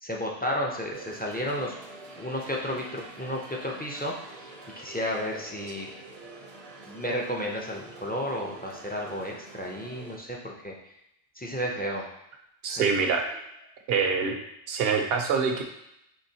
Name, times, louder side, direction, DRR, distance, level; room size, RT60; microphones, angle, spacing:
voice 1, 0.0-1.7 2.2-4.5 4.8-5.9 6.9-10.7 11.4-12.1 12.7-12.8, equal, 15° left, -2 dB, 0.3 m, -32 dB
sound 1, 0.9-10.2, right 3 dB, 40° right, 0.6 m, -46 dB
voice 2, 12.6-13.2 13.9-14.3 14.7-15.6, right 5 dB, 70° right, 3 dB, 0.8 m, -25 dB
5.6 x 3.1 x 2.7 m, 0.80 s
omnidirectional pair, 1.1 m